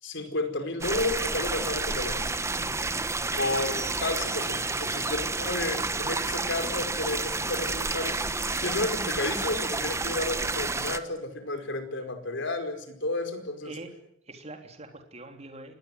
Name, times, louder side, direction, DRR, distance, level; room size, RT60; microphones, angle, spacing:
voice 1, 0.0-2.3 3.4-8.2 8.6-13.7, left 2 dB, 65° left, 7 dB, 5.0 m, -32 dB
sound 1, 0.8-11.0, right 3 dB, 15° right, 1.2 m, -30 dB
voice 2, 2.6-3.0 10.5-10.6 13.7-13.9 14.3-15.7, right 2 dB, 35° right, 5 dB, 3.7 m, -44 dB
26.0 x 20.0 x 9.7 m, 0.74 s
head